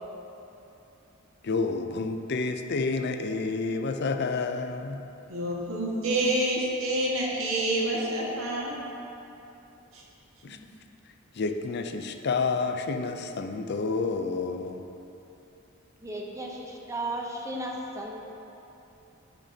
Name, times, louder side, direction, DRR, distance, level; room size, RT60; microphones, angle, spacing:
voice 1, 1.4-5.0 10.4-10.6 11.3-14.8, left 4 dB, 55° left, 6 dB, 0.5 m, -29 dB
voice 2, 5.3-8.8 9.9-10.0, right 1 dB, 80° right, -4 dB, 1.6 m, -28 dB
voice 3, 16.0-18.2, right 1 dB, 15° right, 0 dB, 0.7 m, -35 dB
10.0 x 9.0 x 2.8 m, 3.0 s
head